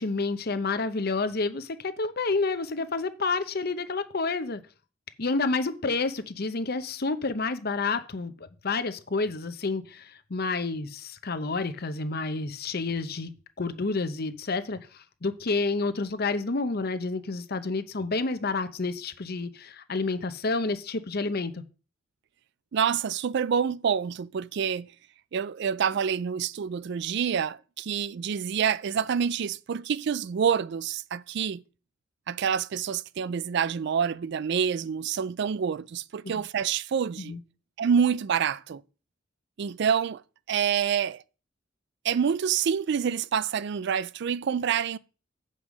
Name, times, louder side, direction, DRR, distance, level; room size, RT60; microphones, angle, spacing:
voice 1, 0.0-4.6 5.2-13.3 13.6-21.6 37.3-37.4, left 3 dB, 50° left, 0.8 m, -29 dB
voice 2, 22.7-24.9 25.3-31.6 32.3-37.4 37.8-38.8 39.6-40.2 40.5-41.2 42.0-45.0, right 7 dB, 60° right, 0.4 m, -27 dB
8.1 x 5.3 x 6.1 m
head